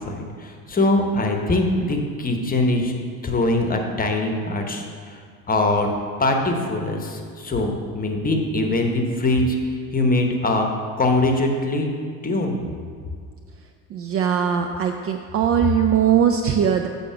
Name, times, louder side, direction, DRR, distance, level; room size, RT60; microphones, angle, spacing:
voice 1, 0.1-2.9 3.2-5.2 5.5-5.9 6.2-9.6 9.9-10.7 11.0-11.9 12.2-12.6, left 2 dB, 20° left, 3 dB, 1.0 m, -22 dB
voice 2, 13.9-16.9, right 8 dB, 35° right, 6 dB, 0.4 m, -20 dB
7.3 x 4.1 x 5.7 m, 2.1 s
hypercardioid pair, 65°, 43 cm